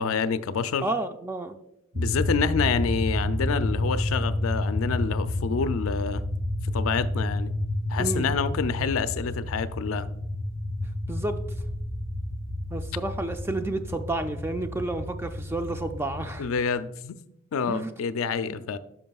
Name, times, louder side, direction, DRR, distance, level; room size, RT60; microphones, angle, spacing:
voice 1, 0.0-0.9 2.0-6.2 6.7-7.5 7.9-10.1 16.4-17.2 17.5-18.8, left 6 dB, 80° left, 0.4 m, -27 dB
voice 2, 0.8-1.5 8.0-8.3 11.1-11.4 12.7-16.5 17.7-17.9 18.5-18.6, right 2 dB, 10° right, 0.4 m, -30 dB
sound 1, 1.9-16.4, left 1 dB, 30° right, 1.4 m, -30 dB
10.5 x 5.7 x 2.3 m
head